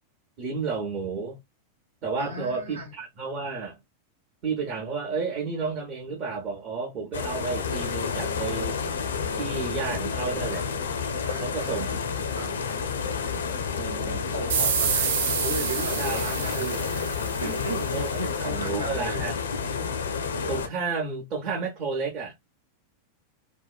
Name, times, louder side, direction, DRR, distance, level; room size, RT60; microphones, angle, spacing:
voice 1, 0.4-1.4 2.0-3.8 4.4-8.8 9.3-10.7 11.4-12.2 13.7-14.2 16.0-16.6 17.9-19.4 20.5-22.3, right 4 dB, 40° right, 0.8 m, -32 dB
voice 2, 2.2-2.9 11.2-11.9 12.3-12.6 14.0-17.1 17.4-19.2, right 2 dB, 80° right, 1.1 m, -35 dB
sound 1, 7.1-20.7, left 6 dB, 65° left, 0.4 m, -30 dB
sound 2, 14.5-17.8, right 7 dB, 60° right, 0.4 m, -28 dB
2.8 x 2.1 x 2.3 m
figure-of-eight pair, 90°, 0 cm